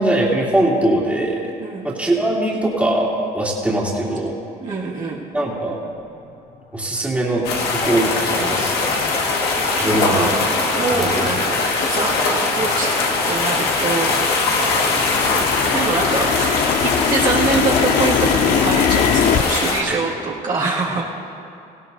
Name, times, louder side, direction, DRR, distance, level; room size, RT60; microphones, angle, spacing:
voice 1, 0.0-1.4 1.8-3.1 3.3-4.3 5.3-5.8 6.7-7.5 7.7-8.8 9.8-10.3 10.9-11.3 19.9-20.0, right 1 dB, 10° right, -6 dB, 2.8 m, -21 dB
voice 2, 1.6-1.9 4.6-5.3 9.0-15.5 15.7-21.1, right 3 dB, 50° right, -6 dB, 2.1 m, -25 dB
sound 1, 7.4-19.8, left 3 dB, 75° left, 1.7 m, -21 dB
sound 2, 8.6-8.7 9.3-9.4 10.0-10.3 10.8-10.9 11.1-11.7 12.0-14.3 14.6-19.4, left 8 dB, 50° left, 0.5 m, -22 dB
18.0 x 16.0 x 2.7 m, 2.6 s
cardioid pair, 110°, 17 cm